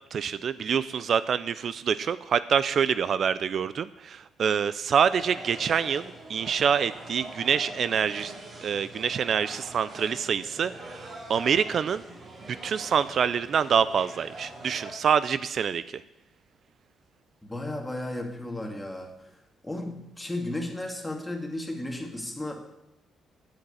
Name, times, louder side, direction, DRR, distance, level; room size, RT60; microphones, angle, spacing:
voice 1, 0.1-6.0 6.3-8.3 8.6-12.0 12.5-16.0, right 7 dB, 55° right, 15 dB, 0.4 m, -26 dB
sound 1, 5.1-14.9, right 2 dB, 40° right, 2.8 m, -43 dB
voice 2, 17.4-22.5, left 1 dB, 10° left, 2 dB, 2.3 m, -34 dB
8.7 x 7.9 x 8.4 m, 0.90 s
cardioid pair, 90°, 0 cm